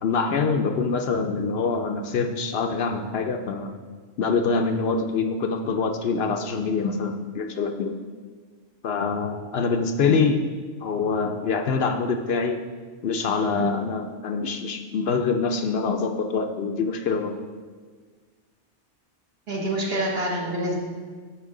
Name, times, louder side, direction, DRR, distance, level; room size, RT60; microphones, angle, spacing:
voice 1, 0.0-3.7 4.2-7.9 8.8-10.4 10.8-12.6 13.0-17.4, left 4 dB, 65° left, 6 dB, 0.8 m, -25 dB
voice 2, 19.5-20.8, right 1 dB, 60° right, -2 dB, 1.6 m, -27 dB
12.0 x 4.4 x 3.7 m, 1.5 s
omnidirectional pair, 1.2 m